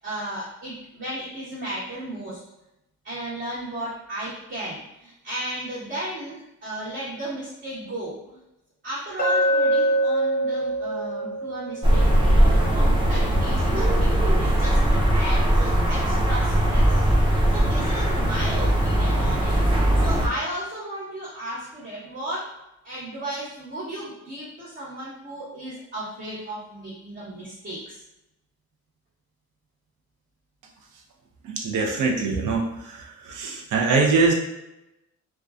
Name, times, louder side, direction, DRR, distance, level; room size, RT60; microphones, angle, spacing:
voice 1, 0.0-2.4 3.0-8.4 8.8-19.6 19.9-22.5 22.8-28.0, right 1 dB, 40° right, -11 dB, 1.0 m, -34 dB
Glass, 9.2-13.3, right 1 dB, 30° left, 0.6 m, -25 dB
sound 1, 11.8-20.3, right 1 dB, 15° right, 0.5 m, -20 dB
voice 2, 31.4-32.7 33.3-34.3, right 4 dB, 85° right, 0 dB, 0.6 m, -22 dB
2.4 x 2.2 x 2.3 m, 0.89 s
cardioid pair, 90°, 30 cm